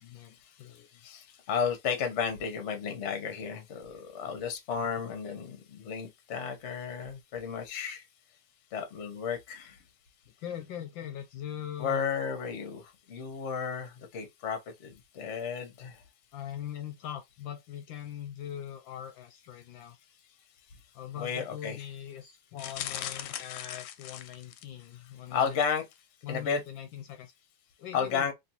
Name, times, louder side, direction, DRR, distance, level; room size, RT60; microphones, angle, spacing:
voice 1, 0.0-0.9 4.8-5.1 10.4-12.1 16.3-20.0 20.9-25.6 26.2-27.3 27.8-28.3, left 10 dB, 75° left, 1.2 m, -41 dB
voice 2, 0.7-8.0 8.7-9.8 11.8-16.0 21.2-21.8 25.3-25.8 26.3-26.6 27.9-28.3, left 6 dB, 50° left, 0.8 m, -33 dB
sound 1, 22.6-24.9 25.4-25.7 25.9-26.0, left 11 dB, 90° left, 1.5 m, -39 dB
3.3 x 3.0 x 2.8 m
omnidirectional pair, 2.4 m